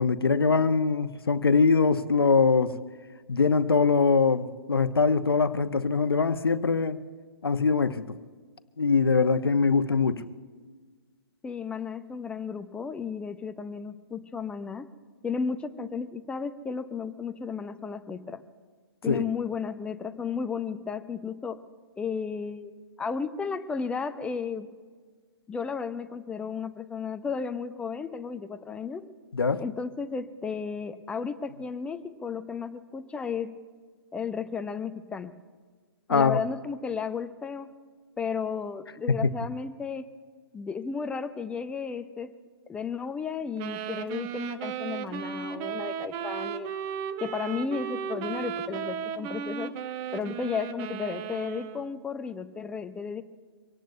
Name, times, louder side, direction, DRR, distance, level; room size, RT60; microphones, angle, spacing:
voice 1, 0.0-2.7 3.3-7.0 7.4-8.0 8.8-10.2 19.1-19.2 29.3-29.6 36.1-36.4, left 4 dB, 70° left, 10 dB, 1.1 m, -23 dB
voice 2, 11.4-14.9 15.2-18.4 19.0-21.6 22.0-22.7 23.0-24.7 25.5-29.1 29.6-33.5 34.1-35.3 36.1-37.7 38.2-40.1 40.5-42.3 42.7-46.7 47.2-49.7 50.1-53.2, left 5 dB, 10° left, 10 dB, 0.7 m, -33 dB
sound 1, 43.6-52.0, right 8 dB, 25° right, 0.9 m, -35 dB
25.0 x 18.0 x 2.7 m, 1.5 s
figure-of-eight pair, 125°, 13 cm